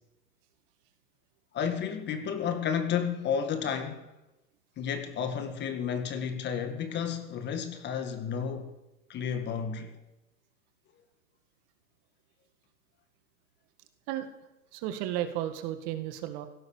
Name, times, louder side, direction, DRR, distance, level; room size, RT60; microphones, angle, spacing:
voice 1, 1.5-4.1 4.8-8.7 9.1-10.0, left 7 dB, 25° left, 1.7 m, -32 dB
voice 2, 14.7-16.5, right 12 dB, 40° right, 1.8 m, -33 dB
16.5 x 12.5 x 7.1 m
hypercardioid pair, 130°, 46 cm